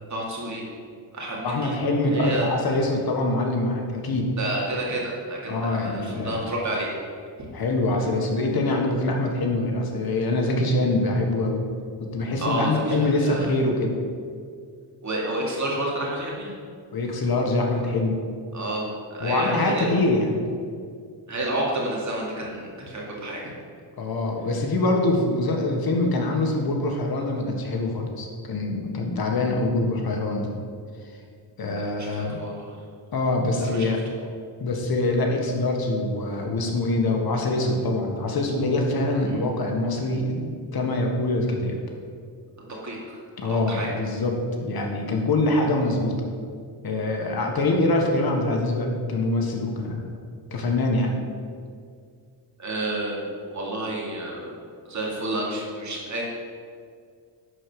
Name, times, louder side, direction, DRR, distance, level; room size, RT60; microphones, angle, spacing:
voice 1, 0.1-0.6 1.1-1.7 2.1-2.5 4.4-6.9 12.4-13.5 15.0-16.5 18.5-20.0 21.3-23.5 32.0-32.7 33.6-33.9 39.2-39.5 42.6-43.2 43.5-43.9 52.6-53.2 53.5-54.5 54.8-56.2, right 1 dB, 35° right, -3 dB, 2.6 m, -30 dB
voice 2, 1.4-4.3 5.5-6.4 7.5-11.6 12.0-13.9 16.9-18.2 19.2-20.4 24.0-30.5 31.6-32.3 33.1-34.0 34.6-41.8 43.4-44.3 44.6-46.2 46.8-50.1 50.5-51.1, left 2 dB, 50° left, 1 dB, 1.6 m, -24 dB
11.0 x 4.7 x 6.9 m, 2.1 s
cardioid pair, 105°, 46 cm